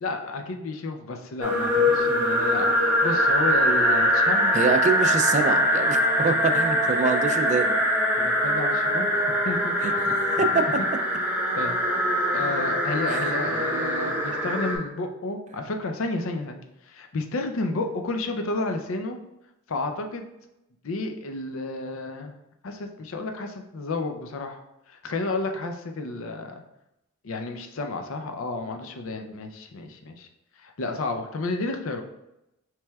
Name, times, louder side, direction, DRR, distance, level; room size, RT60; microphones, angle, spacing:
voice 1, 0.0-4.6 8.2-9.7 10.4-10.5 11.5-11.7 12.3-19.2 19.7-20.2 20.8-22.3 22.6-24.6 24.9-26.6 27.2-30.3 30.6-32.0, left 3 dB, 70° left, 5 dB, 0.5 m, -31 dB
sound 1, 1.4-14.8, equal, 10° right, 0.7 m, -23 dB
voice 2, 4.5-7.8 9.8-10.6 13.1-13.3, right 4 dB, 35° right, 8 dB, 0.3 m, -25 dB
5.9 x 3.3 x 2.3 m, 0.88 s
head